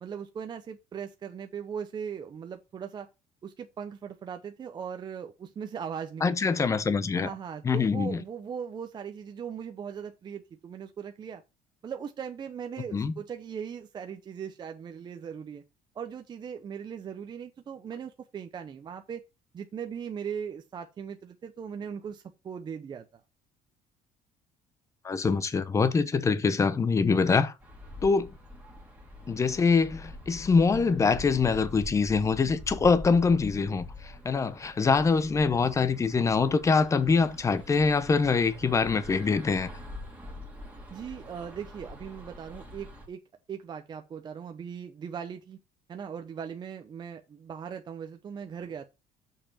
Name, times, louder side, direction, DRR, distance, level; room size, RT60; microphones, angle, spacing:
voice 1, 0.0-3.1 3.4-6.4 7.1-11.4 11.8-15.6 15.9-19.2 19.5-23.2 40.9-43.2 43.5-45.6 45.9-48.8, right 7 dB, 30° right, 0.7 m, -39 dB
voice 2, 6.2-7.3 7.6-8.2 12.9-13.1 25.0-27.5 28.0-28.3 29.3-39.7, left 4 dB, 20° left, 0.8 m, -24 dB
sound 1, 27.6-43.1, left 1 dB, 10° right, 2.3 m, -44 dB
6.7 x 5.2 x 7.1 m
cardioid pair, 160°, 15 cm